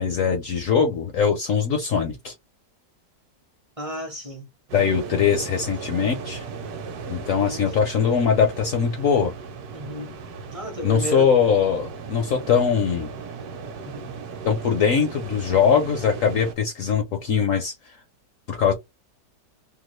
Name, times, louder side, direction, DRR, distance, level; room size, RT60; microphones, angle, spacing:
voice 1, 0.0-2.3 4.7-6.4 7.1-9.3 10.8-13.1 14.4-17.7 18.5-18.7, left 6 dB, 65° left, 0.8 m, -21 dB
voice 2, 3.8-4.5 5.4-5.5 7.4-7.7 9.7-10.1 10.5-11.3 13.8-14.2, equal, 35° right, 0.6 m, -32 dB
sound 1, 4.7-16.6, right 5 dB, 65° right, 1.1 m, -37 dB
2.9 x 2.3 x 3.1 m
omnidirectional pair, 1.9 m